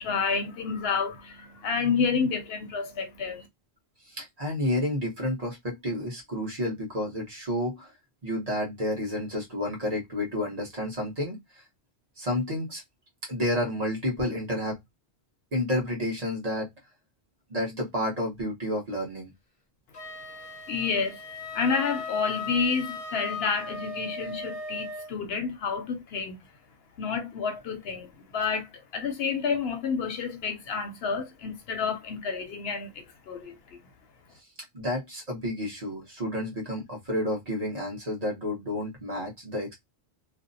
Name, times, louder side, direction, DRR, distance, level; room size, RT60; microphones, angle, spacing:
voice 1, 0.0-3.5 20.7-21.2 21.5-26.4 27.0-33.8, left 5 dB, 70° left, 0.8 m, -29 dB
voice 2, 4.1-7.9 8.2-11.6 12.2-12.8 13.2-14.8 15.5-16.7 17.5-19.3 34.7-39.7, left 1 dB, 40° right, 0.9 m, -30 dB
Wind instrument woodwind instrument, 19.9-25.1, left 4 dB, 40° left, 0.6 m, -37 dB
2.6 x 2.1 x 2.5 m
omnidirectional pair, 1.2 m